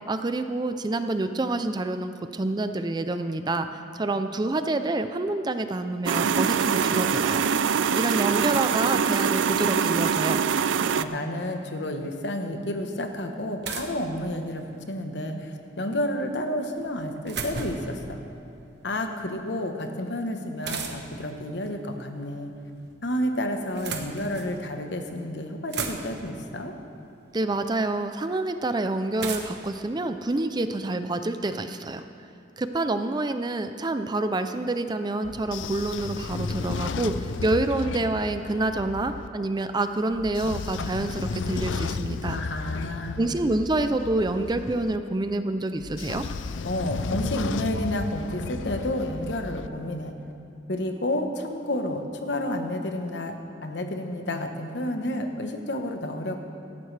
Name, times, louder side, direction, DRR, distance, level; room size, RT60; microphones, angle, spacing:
voice 1, 0.1-3.7 3.9-7.5 7.9-10.4 27.3-32.0 32.6-42.4 43.2-46.3, right 2 dB, 25° right, 9 dB, 0.5 m, -27 dB
sound 1, 6.1-11.0, right 6 dB, 90° right, 0.4 m, -24 dB
voice 2, 11.0-18.2 18.8-22.5 23.0-26.7 42.2-43.2 46.6-50.1 50.7-53.3 53.6-56.4, left 1 dB, 65° left, 5 dB, 1.1 m, -30 dB
sound 2, 12.6-12.7 13.6-14.8 16.8-18.0 20.6-21.3 22.4-23.0 23.6-24.6 25.2-25.3 25.5-26.4 27.5-27.6 29.2-30.7, right 5 dB, 65° right, 1.1 m, -36 dB
Train / Sliding door, 35.2-39.3 40.1-45.0 45.8-49.7, left 4 dB, 85° left, 0.4 m, -33 dB
17.5 x 14.0 x 3.4 m, 2.6 s
head